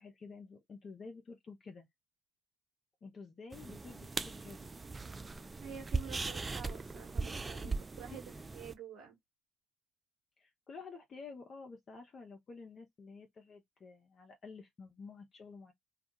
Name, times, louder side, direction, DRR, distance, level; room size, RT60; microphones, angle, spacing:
voice 1, 0.0-1.9 3.0-4.7 7.6-7.8 8.1-8.5 10.4-15.7, left 4 dB, 45° left, 0.6 m, -51 dB
sound 1, 3.5-8.7, right 3 dB, 25° right, 0.3 m, -39 dB
voice 2, 5.6-8.2 8.5-9.2, right 7 dB, 60° right, 1.0 m, -48 dB
2.3 x 2.2 x 2.8 m
hypercardioid pair, 55°, 0 cm